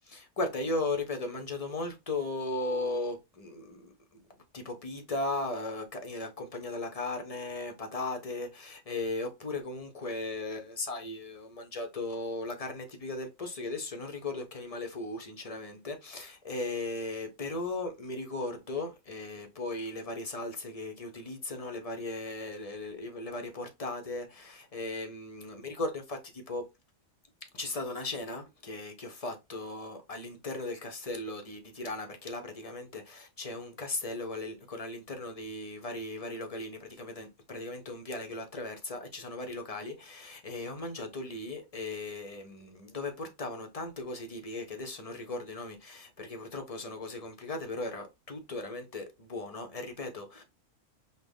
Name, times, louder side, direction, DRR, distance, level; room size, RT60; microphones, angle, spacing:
voice 1, 0.1-4.2 4.5-26.6 27.5-50.4, left 2 dB, 40° left, 0.5 m, -37 dB
5.7 x 2.1 x 3.4 m
omnidirectional pair, 1.5 m